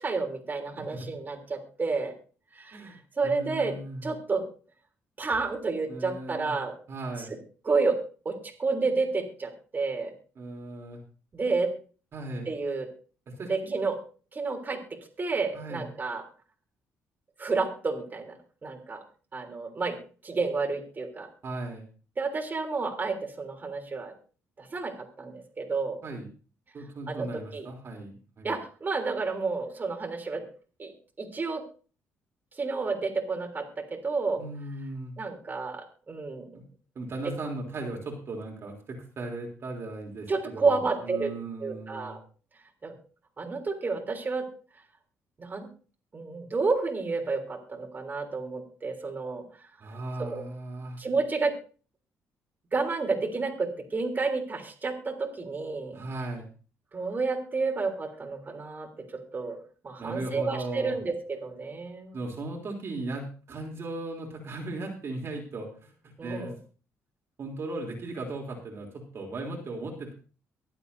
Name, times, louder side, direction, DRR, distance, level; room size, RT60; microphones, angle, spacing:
voice 1, 0.0-2.1 2.5-2.8 3.2-3.7 4.0-4.4 5.2-6.8 7.2-7.3 7.6-8.0 8.2-10.1 11.3-11.7 12.4-12.9 13.5-14.0 14.3-14.8 15.2-16.2 17.4-18.3 18.6-19.0 19.3-20.0 20.2-21.3 22.2-24.1 24.6-26.0 27.1-27.3 27.5-27.6 28.4-30.4 30.8-30.9 31.2-31.6 32.5-34.4 35.2-36.5 40.3-41.3 41.6-42.2 42.8-42.9 43.4-44.4 45.4-45.7 46.1-49.4 50.2-50.4 51.0-51.5 52.7-56.0 56.9-58.9 59.3-59.6 59.8-61.1 61.4-62.2 66.2-66.5, right 4 dB, 35° right, 1 dB, 3.4 m, -30 dB
voice 2, 0.8-1.1 2.7-4.1 5.9-6.5 6.9-7.3 10.4-11.0 12.1-12.5 13.3-13.7 15.5-15.9 21.4-21.8 26.0-26.3 26.7-28.5 34.4-35.1 36.5-36.6 36.9-42.2 49.8-51.0 55.9-56.5 60.0-60.9 62.1-66.5 67.4-70.1, right 2 dB, 50° right, 0 dB, 3.4 m, -37 dB
24.0 x 8.1 x 2.7 m, 0.38 s
cardioid pair, 85°, 6 cm